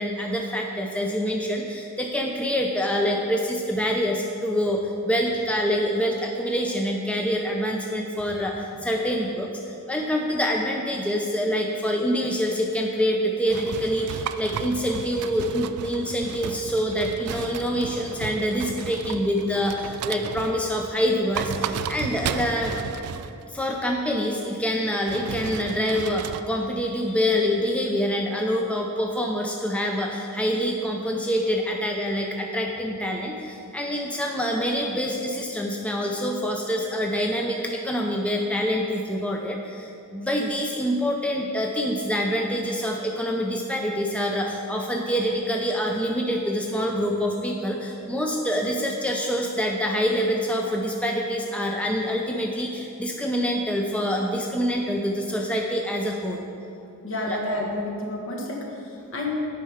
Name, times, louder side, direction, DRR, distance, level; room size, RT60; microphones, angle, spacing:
voice 1, 0.0-9.5 9.9-22.7 23.5-56.4 57.3-57.4, equal, 5° left, 1 dB, 0.4 m, -26 dB
sound 1, 13.5-20.8 21.2-23.5 25.1-26.4, right 7 dB, 85° right, 0.3 m, -34 dB
voice 2, 57.0-59.5, left 2 dB, 65° left, -1 dB, 1.3 m, -30 dB
8.7 x 5.5 x 5.0 m, 2.7 s
head